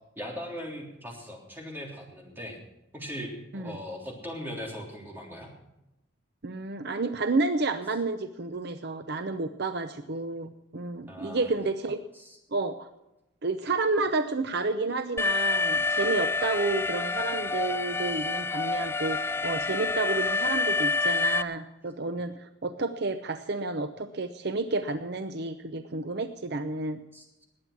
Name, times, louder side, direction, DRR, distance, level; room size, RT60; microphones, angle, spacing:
voice 1, 0.1-2.6 2.9-5.5 11.1-11.5 12.1-12.4 27.1-27.2, equal, 10° right, -1 dB, 3.4 m, -39 dB
voice 2, 6.4-12.0 12.5-12.9 13.4-27.0, right 3 dB, 55° right, 9 dB, 0.7 m, -30 dB
Alarm, 15.2-21.4, left 3 dB, 10° left, 0.4 m, -27 dB
20.0 x 8.8 x 6.0 m, 0.93 s
head